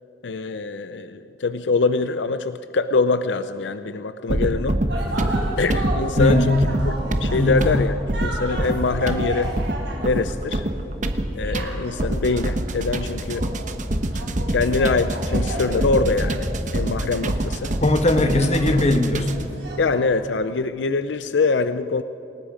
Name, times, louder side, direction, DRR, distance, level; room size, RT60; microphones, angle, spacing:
voice 1, 0.2-4.8 5.6-6.6 6.9-7.0 7.2-9.5 10.0-10.7 11.3-13.5 14.5-17.7 19.8-22.0, left 4 dB, 75° left, 11 dB, 0.5 m, -24 dB
sound 1, 4.3-19.5, right 1 dB, 45° right, 1.2 m, -26 dB
sound 2, 4.9-10.9 11.4-20.4, right 1 dB, 70° right, 4.6 m, -34 dB
voice 2, 6.2-6.5 7.3-7.7 17.8-19.3, left 1 dB, 35° left, 7 dB, 1.4 m, -19 dB
28.0 x 18.5 x 5.1 m, 3.0 s
head